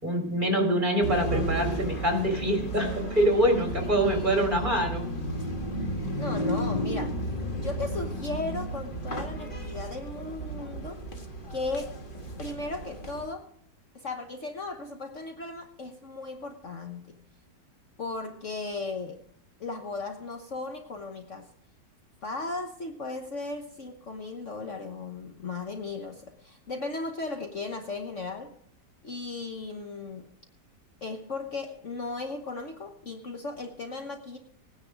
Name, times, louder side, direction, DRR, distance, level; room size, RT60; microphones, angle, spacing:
voice 1, 0.0-5.1, right 1 dB, 25° right, 3 dB, 3.5 m, -25 dB
sound 1, 1.0-13.3, right 1 dB, 30° left, 1.6 m, -33 dB
voice 2, 3.9-4.4 6.2-7.2 7.5-11.0 11.5-12.0 12.4-13.5 13.9-17.2 18.0-19.2 19.6-21.5 22.2-28.5 29.0-30.3 31.0-34.4, left 3 dB, 50° left, 4 dB, 1.4 m, -36 dB
17.5 x 10.0 x 4.8 m, 0.67 s
omnidirectional pair, 1.8 m